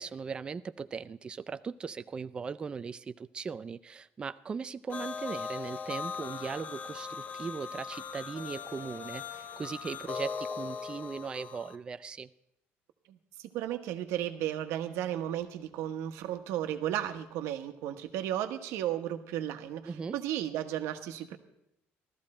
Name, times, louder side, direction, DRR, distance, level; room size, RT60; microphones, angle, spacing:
voice 1, 0.0-12.3 19.9-20.2, right 5 dB, 20° right, 13 dB, 0.4 m, -39 dB
sound 1, 4.9-11.8, left 6 dB, 40° left, 0.7 m, -39 dB
voice 2, 13.1-21.4, right 11 dB, 90° right, 8 dB, 1.2 m, -34 dB
15.0 x 13.5 x 4.3 m, 0.84 s
cardioid pair, 165°, 5 cm